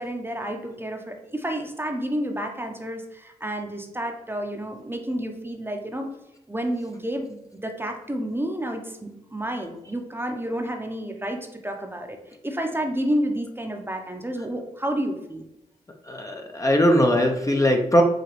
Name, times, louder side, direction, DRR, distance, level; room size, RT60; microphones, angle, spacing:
voice 1, 0.0-6.1 6.5-12.2 12.4-15.4, right 1 dB, 15° right, 3 dB, 0.8 m, -30 dB
voice 2, 16.1-18.0, equal, 20° left, 2 dB, 0.6 m, -20 dB
4.9 x 2.8 x 3.1 m, 0.87 s
supercardioid pair, 40°, 16 cm